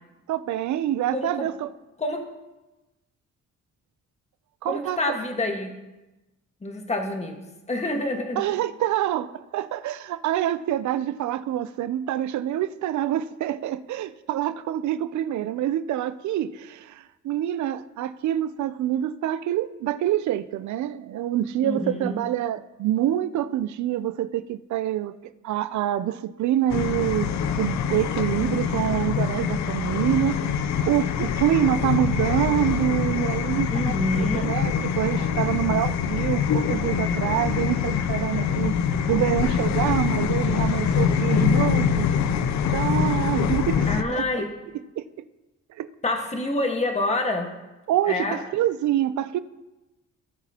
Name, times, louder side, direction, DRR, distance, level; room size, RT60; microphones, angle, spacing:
voice 1, 0.3-1.7 4.6-5.2 8.4-25.2 25.4-27.3 27.6-30.4 30.8-38.7 39.1-42.1 42.7-44.4 45.0-45.1 45.8-45.9 47.9-49.4, right 12 dB, 70° right, 14 dB, 0.5 m, -26 dB
voice 2, 1.1-1.5 2.0-2.3 4.6-5.7 6.6-7.4 7.7-8.4 21.6-22.2 33.7-34.6 43.9-44.5 46.0-47.5 48.1-48.4, left 2 dB, 20° left, 3 dB, 1.5 m, -27 dB
sound 1, 26.7-44.0, left 7 dB, 65° left, 0.6 m, -24 dB
17.5 x 5.9 x 2.9 m, 1.0 s
cardioid pair, 90°, 30 cm